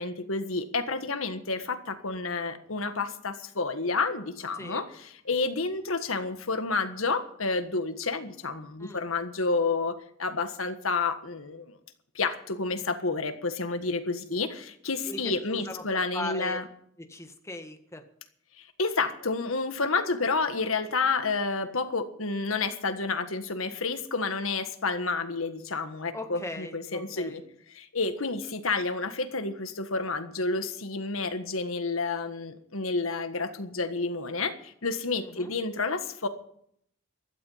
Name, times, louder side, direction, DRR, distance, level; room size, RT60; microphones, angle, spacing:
voice 1, 0.0-11.8 12.1-16.7 18.6-27.4 27.7-36.3, left 3 dB, 85° left, 9 dB, 1.7 m, -30 dB
voice 2, 15.1-16.6 17.0-18.0 26.1-27.4 35.2-35.5, left 1 dB, 15° left, 6 dB, 1.6 m, -39 dB
15.5 x 12.5 x 5.7 m, 0.67 s
head